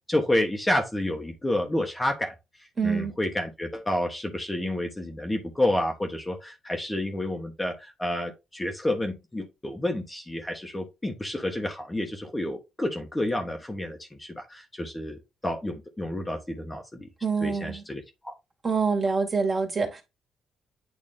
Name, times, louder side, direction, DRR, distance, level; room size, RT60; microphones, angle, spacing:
voice 1, 0.1-2.3 2.8-17.1 17.4-18.3, left 1 dB, 15° left, 1.3 m, -29 dB
voice 2, 2.8-3.1 17.2-17.8 18.6-20.0, right 4 dB, 35° right, 2.2 m, -26 dB
8.8 x 3.1 x 3.7 m
cardioid pair, 90°, 0 cm